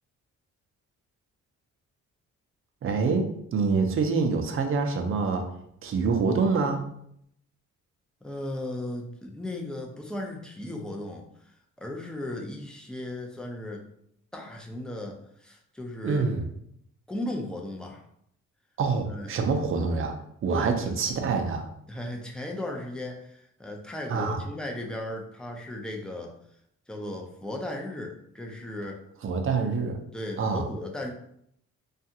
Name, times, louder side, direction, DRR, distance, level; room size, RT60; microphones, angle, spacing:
voice 1, 2.8-5.5 5.8-6.8 16.0-16.4 18.8-21.7 24.1-24.4 29.2-30.0 30.4-30.6, right 4 dB, 45° right, 5 dB, 0.5 m, -26 dB
voice 2, 8.2-13.8 14.3-16.3 17.1-18.1 19.0-19.3 20.5-20.9 21.9-26.3 26.9-29.0 30.1-31.1, left 1 dB, 5° left, 0 dB, 0.4 m, -36 dB
2.4 x 2.3 x 2.8 m, 0.71 s
cardioid pair, 90°, 30 cm